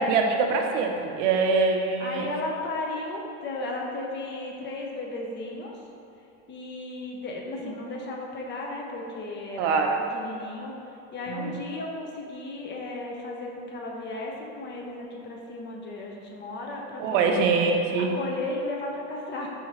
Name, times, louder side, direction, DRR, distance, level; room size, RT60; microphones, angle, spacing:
voice 1, 0.0-2.3 9.6-10.0 11.3-11.6 17.0-18.1, right 4 dB, 85° right, 3 dB, 0.6 m, -24 dB
voice 2, 2.0-5.7 6.5-9.8 10.1-10.7 11.1-17.4 17.9-19.5, left 2 dB, 30° left, -1 dB, 0.5 m, -35 dB
4.8 x 2.8 x 2.9 m, 2.6 s
supercardioid pair, 115°, 36 cm